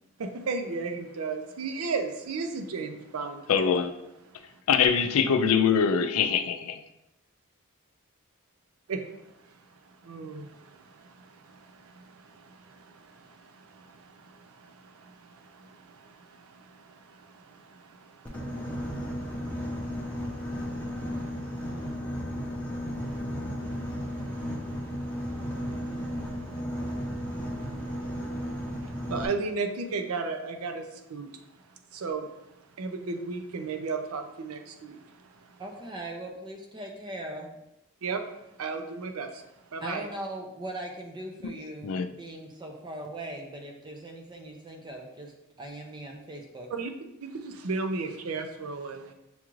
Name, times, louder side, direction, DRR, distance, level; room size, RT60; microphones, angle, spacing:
voice 1, 0.2-3.8 4.4-4.6 8.9-22.0 23.0-23.2 23.6-35.6 38.0-38.3 38.6-39.4 39.7-40.1 46.7-46.9 47.2-49.1, right 4 dB, 80° right, 0.5 m, -37 dB
voice 2, 3.5-3.9 4.7-6.8 41.8-42.1, left 6 dB, 80° left, 0.4 m, -23 dB
Boat Water vehicle, 18.2-29.2, equal, 5° left, 0.8 m, -34 dB
voice 3, 35.6-37.5 39.8-41.9 42.2-46.7, right 1 dB, 20° right, 0.5 m, -40 dB
7.0 x 2.4 x 3.0 m
head